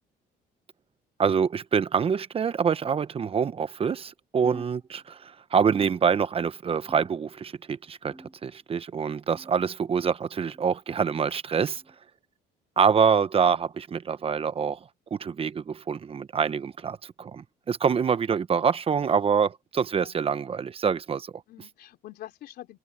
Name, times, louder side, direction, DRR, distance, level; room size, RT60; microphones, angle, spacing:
voice 1, 1.2-8.1 8.4-11.8 12.8-14.8 15.1-21.3, right 6 dB, 35° right, 0.9 m, -26 dB
sound 1, 4.4-5.3 5.7-6.5 6.9-7.5 8.1-8.7 9.3-9.7 10.5-10.8 11.8-12.0 13.0-13.2 14.2-14.4 15.4-15.6 16.6-16.8 17.9-18.0 19.1-19.2, right 1 dB, 5° right, 2.1 m, -50 dB
voice 2, 21.5-22.8, left 13 dB, 70° left, 3.9 m, -46 dB
cardioid pair, 110°, 17 cm